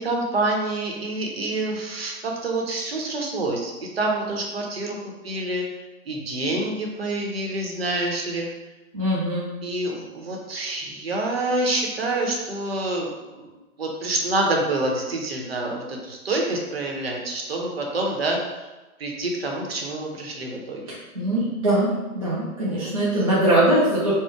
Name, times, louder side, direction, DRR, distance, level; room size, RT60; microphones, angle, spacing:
voice 1, 0.0-5.0 5.2-5.6 6.1-8.5 9.6-13.5 13.8-18.7 19.0-20.8 22.6-23.4, right 2 dB, 45° right, 0 dB, 0.8 m, -27 dB
voice 2, 8.9-9.5 20.9-21.9 22.1-24.1, right 1 dB, 25° right, -9 dB, 0.4 m, -22 dB
4.5 x 2.1 x 4.6 m, 1.1 s
hypercardioid pair, 170°, 43 cm